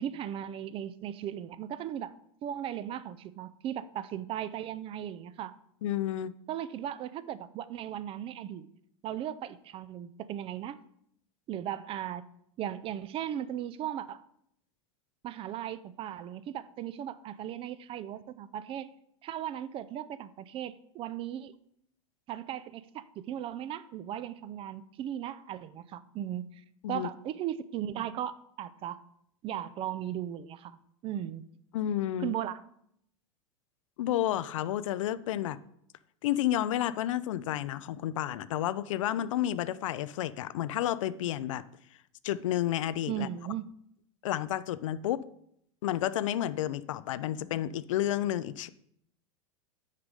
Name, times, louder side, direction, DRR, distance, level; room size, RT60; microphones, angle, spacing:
voice 1, 0.0-2.1 2.4-5.6 6.5-8.7 9.0-10.8 11.5-12.2 12.6-14.2 15.2-18.9 19.2-21.5 22.3-26.6 26.9-29.0 29.4-30.8 31.0-31.4 32.2-32.6 43.1-43.6, right 11 dB, 35° right, 15 dB, 0.4 m, -37 dB
voice 2, 5.8-6.3 26.8-27.1 31.7-32.3 34.0-35.6 36.2-41.6 42.2-43.3 44.2-45.2 45.8-48.7, left 12 dB, 80° left, 16 dB, 0.4 m, -31 dB
6.5 x 4.8 x 5.3 m, 0.72 s
hypercardioid pair, 105°, 16 cm